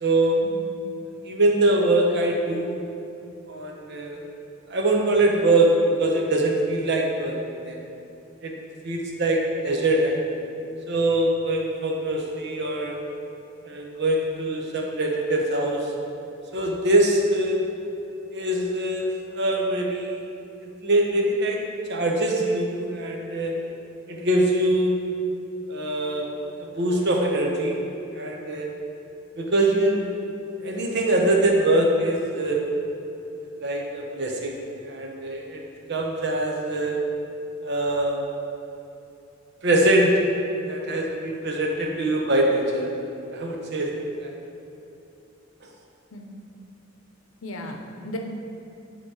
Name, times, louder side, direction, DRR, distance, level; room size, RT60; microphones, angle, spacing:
voice 1, 0.0-0.4 1.2-2.9 3.5-4.2 4.7-7.4 7.6-7.9 8.4-8.5 8.8-10.3 10.9-13.0 13.6-15.9 16.5-17.6 18.3-20.2 20.6-21.6 21.9-23.6 24.1-25.0 25.7-26.3 26.6-27.8 28.1-28.7 29.4-30.1 30.6-32.7 33.4-35.6 35.9-37.0 37.6-38.2 39.6-40.1 40.7-42.9 43.3-43.9 44.2-44.3, right 1 dB, 60° right, 0 dB, 0.9 m, -23 dB
voice 2, 47.4-48.2, left 1 dB, 85° left, 3 dB, 0.7 m, -36 dB
8.9 x 3.1 x 4.8 m, 2.8 s
head